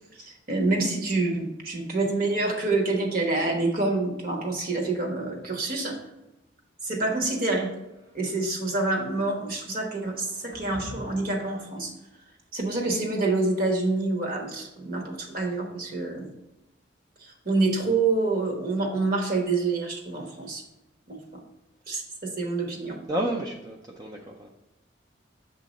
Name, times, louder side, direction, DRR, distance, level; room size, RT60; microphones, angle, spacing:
voice 1, 0.1-6.0 6.8-7.7 8.1-11.9 12.5-16.3 17.2-20.6 21.1-21.4 21.9-23.0, right 3 dB, 50° right, 1 dB, 1.2 m, -27 dB
sound 1, 7.8-8.7 10.1-11.3, left 1 dB, 75° right, 1.3 m, -45 dB
voice 2, 23.1-24.5, right 1 dB, 20° right, 0 dB, 0.4 m, -31 dB
7.3 x 2.8 x 5.1 m, 0.95 s
head